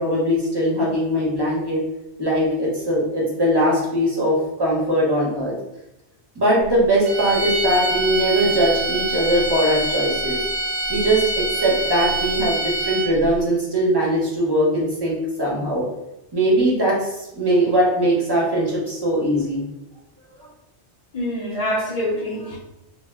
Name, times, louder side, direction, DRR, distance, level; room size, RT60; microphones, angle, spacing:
voice 1, 0.0-1.8 2.2-5.5 6.3-10.4 10.9-15.9 16.3-19.6 20.4-20.5, right 1 dB, 25° right, -5 dB, 0.6 m, -20 dB
sound 1, 7.0-13.3, right 2 dB, 60° right, 0.8 m, -25 dB
voice 2, 21.1-22.6, left 1 dB, 45° left, -2 dB, 0.5 m, -25 dB
2.1 x 2.1 x 3.4 m, 0.88 s
omnidirectional pair, 1.2 m